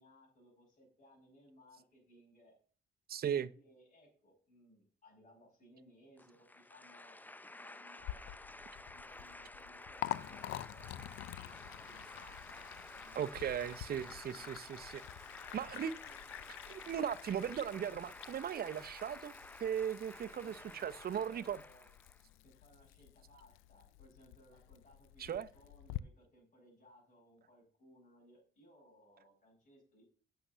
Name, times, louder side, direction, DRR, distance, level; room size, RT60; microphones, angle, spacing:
voice 1, 0.0-2.5 3.3-8.4 8.9-13.8 14.2-15.7 16.0-16.2 20.3-21.9 22.4-30.0, equal, 40° left, 6.0 m, -64 dB
voice 2, 3.1-3.5 13.2-15.0 15.5-15.9 16.7-19.3 19.6-21.6 25.2-25.5, right 9 dB, 50° right, 0.7 m, -37 dB
sound 1, 6.2-22.2, left 2 dB, 10° left, 0.5 m, -52 dB
Liquid, 8.0-26.0, left 15 dB, 90° left, 0.4 m, -48 dB
8.6 x 6.8 x 6.8 m
cardioid pair, 90°, 20 cm